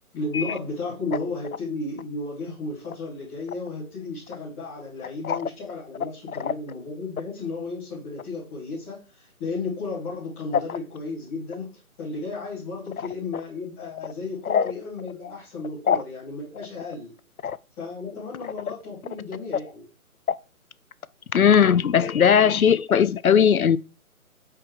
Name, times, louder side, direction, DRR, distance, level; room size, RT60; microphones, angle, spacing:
voice 1, 0.1-17.1 17.8-19.8, left 3 dB, 5° left, 0.9 m, -34 dB
voice 2, 21.3-23.8, left 7 dB, 75° left, 0.6 m, -19 dB
6.0 x 4.9 x 4.6 m
figure-of-eight pair, 145°, 44 cm